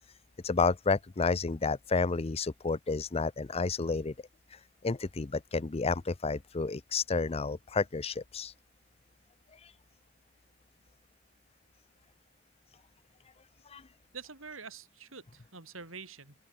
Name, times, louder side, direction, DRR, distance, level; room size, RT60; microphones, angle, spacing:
voice 1, 0.4-4.1 4.5-8.5 9.5-9.7 13.7-13.8, left 4 dB, 30° left, 0.6 m, -31 dB
voice 2, 14.1-16.5, right 5 dB, 85° right, 5.8 m, -46 dB
open air
head